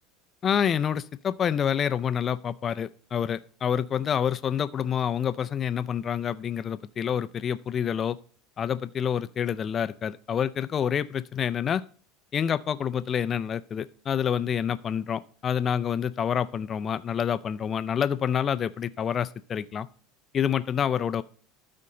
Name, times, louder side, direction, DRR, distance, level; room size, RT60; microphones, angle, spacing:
voice 1, 0.4-8.2 8.6-11.8 12.3-19.9 20.3-21.2, left 8 dB, 30° left, 15 dB, 0.4 m, -27 dB
12.5 x 4.4 x 3.8 m, 0.43 s
supercardioid pair, 130°, 0 cm